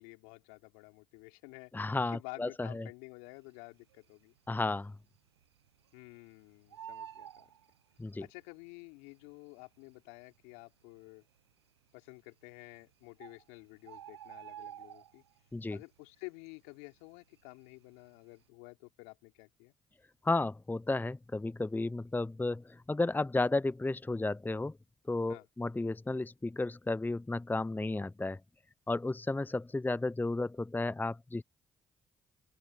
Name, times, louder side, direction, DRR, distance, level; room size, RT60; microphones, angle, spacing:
voice 1, 0.0-1.7 2.1-4.3 5.9-7.5 8.2-11.2 11.9-15.2 15.7-19.7 25.3-25.5, left 31 dB, 75° left, 4.1 m, -51 dB
voice 2, 1.7-2.9 4.5-4.9 8.0-8.3 15.5-15.8 20.2-24.7 25.1-28.4 28.9-31.4, left 2 dB, 15° left, 0.8 m, -33 dB
Bird, 3.8-4.4 4.7-4.8 5.1-6.3 6.5-8.4 9.2-9.3 9.9-10.0 10.2-10.4 11.0-11.5 12.4-12.5 12.9-13.0 13.2-15.5 15.8-16.1 16.5-17.8 18.2-18.4, right 10 dB, 90° right, 0.9 m, -49 dB
open air
hypercardioid pair, 40°, 13 cm